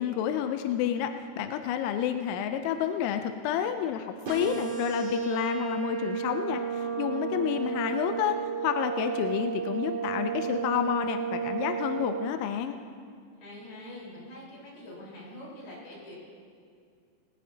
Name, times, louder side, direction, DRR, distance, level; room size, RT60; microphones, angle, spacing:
voice 1, 0.0-8.4 8.6-12.8, left 9 dB, 85° left, 7 dB, 2.7 m, -30 dB
sound 1, 4.2-12.3, right 7 dB, 45° right, 2.1 m, -32 dB
voice 2, 7.6-7.9 13.4-16.2, left 1 dB, 50° left, -6 dB, 6.0 m, -45 dB
20.0 x 18.0 x 2.8 m, 2.3 s
omnidirectional pair, 6.0 m